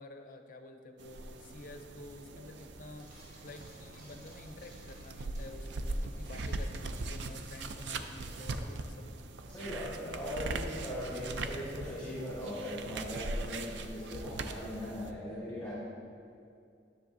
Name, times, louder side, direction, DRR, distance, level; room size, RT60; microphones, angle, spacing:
voice 1, 0.0-9.1, left 2 dB, 50° left, 6 dB, 0.5 m, -50 dB
sound 1, 1.0-15.1, right 2 dB, 80° right, 0.4 m, -40 dB
Frying (food), 3.0-8.4, equal, 45° right, 1.8 m, -58 dB
voice 2, 9.5-15.8, left 1 dB, 15° left, -9 dB, 1.5 m, -39 dB
10.0 x 6.5 x 2.6 m, 2.4 s
head